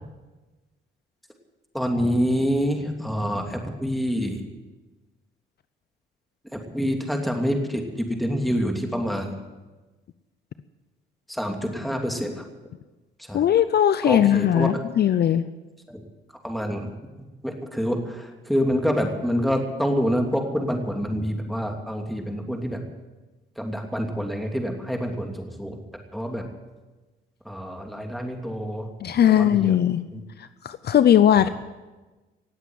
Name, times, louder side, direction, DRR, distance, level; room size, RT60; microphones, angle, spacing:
voice 1, 1.7-4.4 6.7-9.3 11.3-12.4 13.3-13.4 14.0-14.7 15.9-16.0 16.4-16.9 17.4-22.8 23.6-25.8 26.1-26.4 27.4-28.9 29.2-29.7 30.1-30.2, equal, ahead, 2 dB, 2.9 m, -26 dB
voice 2, 13.3-15.5 29.0-30.0 30.4-31.5, left 10 dB, 55° left, 13 dB, 0.6 m, -19 dB
19.0 x 8.0 x 9.2 m, 1.2 s
cardioid pair, 90°, 20 cm